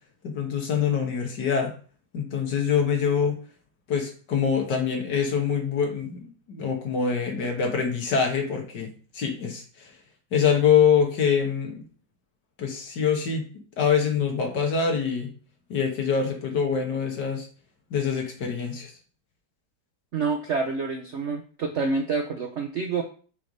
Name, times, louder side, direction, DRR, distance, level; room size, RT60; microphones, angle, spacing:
voice 1, 0.2-1.7 2.1-3.4 3.9-9.9 10.3-11.8 12.6-13.5 13.8-15.3 15.7-17.5 17.9-18.9, left 7 dB, 70° left, 2 dB, 1.9 m, -25 dB
voice 2, 20.1-23.0, right 4 dB, 65° right, 4 dB, 0.7 m, -27 dB
6.8 x 3.3 x 5.2 m, 0.41 s
omnidirectional pair, 1.9 m